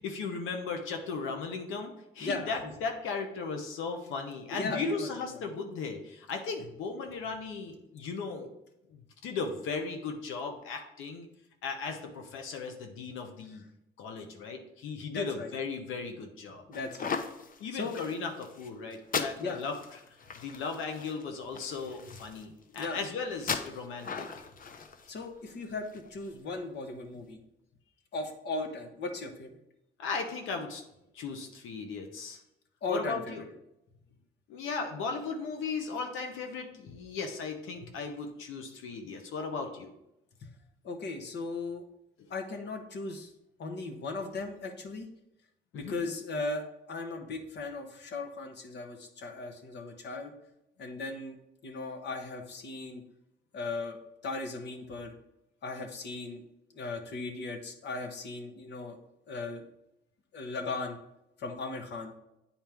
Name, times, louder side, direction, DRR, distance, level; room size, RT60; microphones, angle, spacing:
voice 1, 0.0-8.5 8.9-11.3 11.6-13.6 14.0-16.6 17.6-19.8 20.3-24.3 30.0-30.8 31.1-32.4 32.9-33.5 34.5-39.9 42.2-42.3 45.7-46.0, left 4 dB, 85° left, 4 dB, 0.9 m, -37 dB
voice 2, 2.2-2.7 4.5-5.5 15.1-15.5 16.7-17.2 17.7-18.0 19.4-19.6 22.8-23.0 25.1-27.4 28.1-29.6 32.8-33.4 40.4-40.5 40.8-41.8 42.3-43.3 43.6-45.1 45.7-50.3 50.8-51.3 51.6-53.0 53.5-54.0 54.2-55.1 55.6-56.4 56.7-59.0 59.3-59.6 60.3-61.0 61.4-62.1, left 3 dB, 60° left, 5 dB, 1.2 m, -37 dB
sound 1, 16.7-26.3, left 5 dB, 45° left, 0.7 m, -39 dB
9.0 x 4.4 x 3.5 m, 0.85 s
cardioid pair, 90°, 20 cm